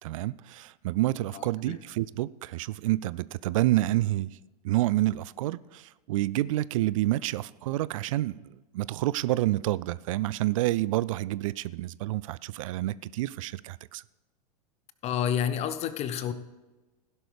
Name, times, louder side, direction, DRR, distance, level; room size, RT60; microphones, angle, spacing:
voice 1, 0.0-4.3 4.6-8.4 8.7-14.0, right 16 dB, 55° right, 0.4 m, -28 dB
voice 2, 1.3-1.8 15.0-16.3, left 9 dB, 30° left, 0.9 m, -30 dB
16.0 x 11.5 x 3.4 m
figure-of-eight pair, 95°, 20 cm